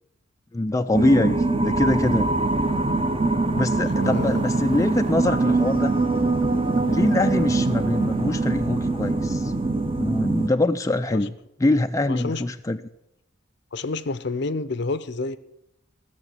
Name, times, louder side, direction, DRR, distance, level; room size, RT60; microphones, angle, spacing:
voice 1, 0.5-2.3 3.6-5.9 6.9-9.5 10.0-11.3 11.6-12.8, left 2 dB, 15° left, 0.4 m, -23 dB
sound 1, 0.9-10.5, right 3 dB, 30° right, 0.8 m, -23 dB
voice 2, 4.0-4.4 11.1-11.2 12.1-12.4 13.7-15.4, left 3 dB, 60° left, 0.6 m, -29 dB
15.0 x 6.9 x 8.0 m
head